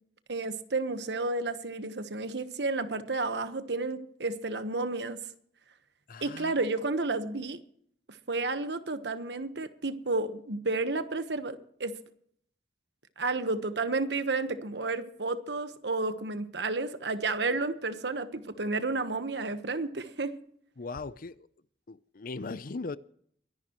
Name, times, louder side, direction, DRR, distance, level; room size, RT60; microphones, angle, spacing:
voice 1, 0.3-5.2 6.2-7.6 8.3-12.0 13.2-20.3, right 3 dB, 75° right, 1.2 m, -31 dB
voice 2, 6.1-6.6 20.8-21.5 21.9-23.0, left 3 dB, 55° left, 0.6 m, -39 dB
23.5 x 11.0 x 3.1 m
head